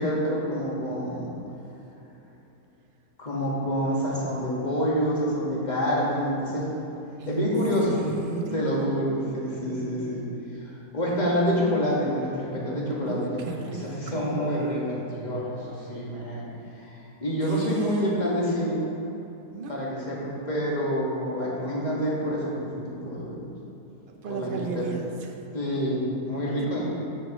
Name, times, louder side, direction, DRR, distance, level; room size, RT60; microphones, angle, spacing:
voice 1, 0.0-1.3 3.2-6.7 7.3-8.0 8.5-10.3 10.6-16.5 16.8-18.8 19.7-23.5 24.3-24.9 25.5-26.8, equal, 30° left, -6 dB, 1.8 m, -27 dB
voice 2, 7.2-7.5 7.9-8.7 13.1-14.6 17.4-17.9 19.5-19.8 24.1-25.5 26.6-26.7, right 5 dB, 65° right, 3 dB, 0.5 m, -35 dB
9.3 x 9.1 x 3.1 m, 3.0 s
omnidirectional pair, 1.6 m